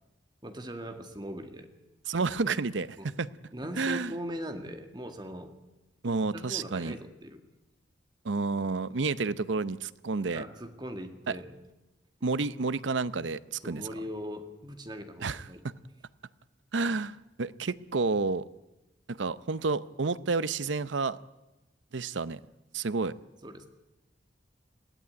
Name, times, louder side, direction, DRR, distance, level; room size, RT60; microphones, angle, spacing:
voice 1, 0.4-1.7 3.0-3.1 3.5-5.5 6.0-7.4 10.3-11.6 13.6-15.6 23.4-23.7, equal, 25° right, 2.0 m, -40 dB
voice 2, 2.1-3.3 3.8-4.1 6.0-7.0 8.2-10.4 11.3-11.4 12.2-13.8 15.2-15.7 16.7-18.4 19.1-21.2 21.9-22.4 22.7-23.1, right 4 dB, 90° right, 0.7 m, -30 dB
21.5 x 16.5 x 9.5 m
head